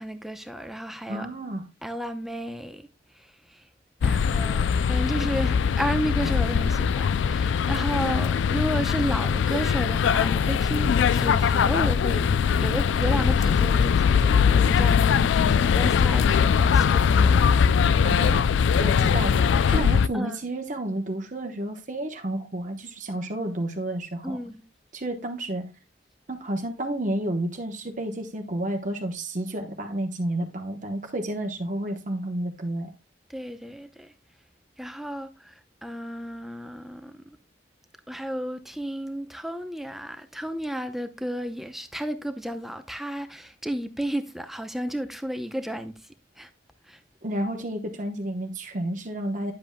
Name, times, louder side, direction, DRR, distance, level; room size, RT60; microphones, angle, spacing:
voice 1, 0.0-1.3 1.8-2.9 3.1-3.7 4.0-12.3 12.6-17.5 20.1-20.4 24.2-24.6 33.3-34.1 34.8-37.2 38.1-46.1 46.4-46.5 46.8-47.0, equal, ahead, 0.6 m, -33 dB
voice 2, 1.1-1.6 18.0-18.4 18.8-24.4 24.9-25.7 26.3-32.9 47.2-49.5, right 1 dB, 40° right, 1.0 m, -31 dB
sound 1, 4.0-20.1, left 6 dB, 75° left, 0.3 m, -21 dB
10.5 x 7.8 x 2.2 m
head